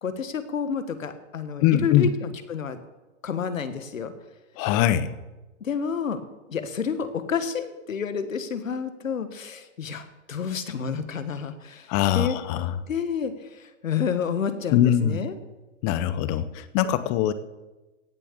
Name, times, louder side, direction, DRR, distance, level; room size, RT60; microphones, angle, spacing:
voice 1, 0.0-2.8 3.2-4.1 5.6-6.2 6.5-12.4 12.9-15.3, left 7 dB, 85° left, 11 dB, 1.5 m, -30 dB
voice 2, 1.6-2.1 4.6-5.1 11.9-12.7 14.7-15.2 15.8-17.3, left 11 dB, 30° left, 15 dB, 0.7 m, -22 dB
17.0 x 6.8 x 6.7 m, 1.1 s
hypercardioid pair, 130°, 39 cm